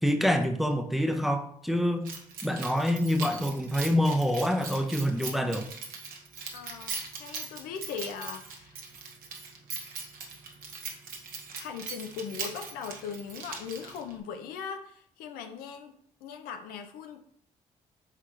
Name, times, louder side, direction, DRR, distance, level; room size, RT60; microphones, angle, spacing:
voice 1, 0.0-2.1 2.4-5.7, equal, ahead, 6 dB, 0.5 m, -26 dB
Keys jangling, 2.0-14.2, right 5 dB, 70° right, 0.8 m, -40 dB
voice 2, 6.5-8.8 11.6-15.9 16.2-17.2, left 6 dB, 85° left, 6 dB, 0.5 m, -39 dB
4.4 x 3.7 x 2.4 m, 0.65 s
supercardioid pair, 65°, 15 cm